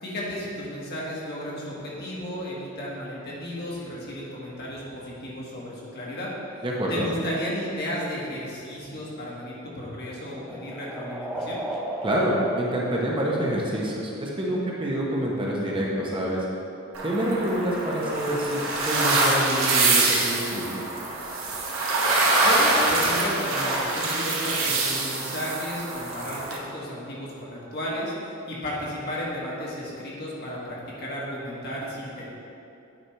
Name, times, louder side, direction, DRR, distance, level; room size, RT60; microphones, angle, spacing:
voice 1, 0.0-6.3 6.9-11.6 22.4-28.1 28.5-32.3, equal, 50° left, -5 dB, 1.5 m, -33 dB
voice 2, 6.6-7.1 12.0-16.4 17.0-20.9, equal, 25° right, -4 dB, 0.8 m, -27 dB
sound 1, 9.3-13.9, right 1 dB, 5° right, 0.5 m, -36 dB
sound 2, 16.9-26.6, right 2 dB, 75° right, 1.0 m, -24 dB
9.3 x 3.4 x 4.4 m, 2.7 s
head